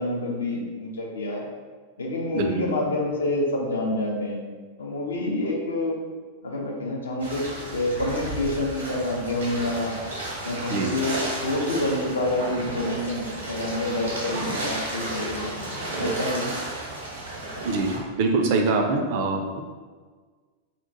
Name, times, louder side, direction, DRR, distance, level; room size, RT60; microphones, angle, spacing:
voice 1, 0.0-1.5 2.0-4.4 4.8-6.0 6.4-9.9 10.4-11.2 11.4-15.5 16.0-16.5, left 1 dB, 70° left, 0 dB, 0.4 m, -27 dB
sound 1, 7.2-18.0, right 1 dB, 75° right, 0.7 m, -33 dB
voice 2, 17.6-19.6, right 3 dB, 50° right, 3 dB, 0.3 m, -24 dB
2.8 x 2.1 x 2.6 m, 1.5 s
figure-of-eight pair, 90°, 0 cm